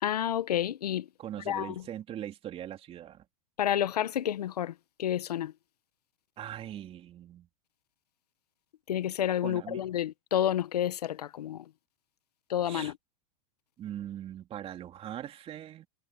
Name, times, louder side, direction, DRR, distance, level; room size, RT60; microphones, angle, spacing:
voice 1, 0.0-1.1 1.5-1.7 3.6-4.7 5.0-5.5 8.9-11.6 12.5-12.9, left 10 dB, 85° left, 1.2 m, -29 dB
voice 2, 1.2-3.2 6.4-7.5 9.4-9.8 12.6-12.9 13.8-15.9, right 11 dB, 30° right, 3.1 m, -41 dB
hypercardioid pair, 125°, 20 cm